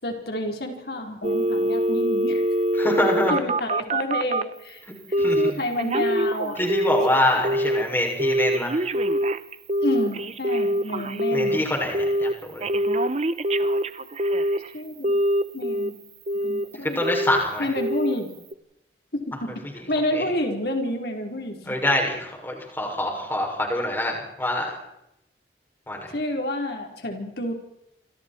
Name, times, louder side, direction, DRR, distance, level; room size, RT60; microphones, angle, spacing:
voice 1, 0.0-2.5 3.3-4.8 5.2-6.6 7.1-7.2 9.8-11.6 14.7-15.2 15.5-15.9 16.4-17.0 17.6-18.3 19.1-21.8 26.1-27.5, left 1 dB, 65° left, 2 dB, 4.2 m, -29 dB
Telephone, 1.2-4.5 5.1-5.5 5.8-7.1 7.4-7.8 8.2-11.6 11.9-12.3 12.6-14.7 15.0-15.9 16.3-16.7 17.0-17.4 17.8-18.2 18.5-18.6, right 1 dB, 40° right, 1.0 m, -24 dB
voice 2, 2.8-3.4 5.2-5.6 6.6-8.8 11.3-12.7 16.8-17.7 20.2-20.3 21.7-24.7 25.9-26.1, left 1 dB, 10° left, 0 dB, 6.8 m, -25 dB
28.0 x 27.5 x 4.6 m, 0.84 s
head